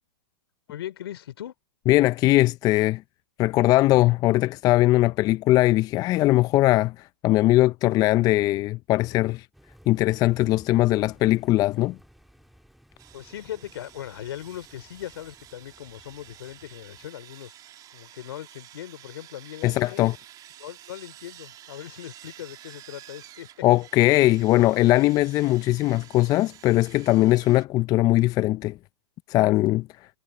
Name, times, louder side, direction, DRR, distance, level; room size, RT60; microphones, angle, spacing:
voice 1, 0.7-1.5 13.1-17.5 17.9-20.0 20.6-23.6, left 12 dB, 65° left, 3.1 m, -39 dB
voice 2, 1.9-3.0 3.4-6.9 7.2-9.5 9.9-12.0 19.6-20.1 23.6-28.8 29.3-29.9, left 17 dB, 25° left, 0.5 m, -20 dB
sound 1, 9.5-17.1, equal, ahead, 3.1 m, -55 dB
Sawing, 13.0-27.6, right 12 dB, 25° right, 2.6 m, -50 dB
hypercardioid pair, 120°, 14 cm